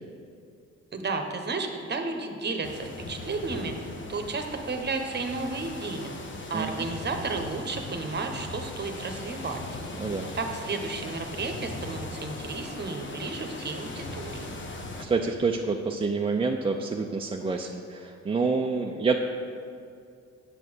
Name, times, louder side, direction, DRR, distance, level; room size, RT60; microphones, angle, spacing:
voice 1, 0.9-3.7 4.1-6.1 6.5-9.6 10.3-14.6, right 3 dB, 35° right, 5 dB, 1.1 m, -32 dB
sound 1, 2.6-15.0, left 2 dB, 40° left, 1.1 m, -39 dB
voice 2, 10.0-10.3 15.0-19.2, right 4 dB, 20° right, 1 dB, 0.5 m, -27 dB
8.4 x 6.8 x 6.3 m, 2.4 s
cardioid pair, 90°, 30 cm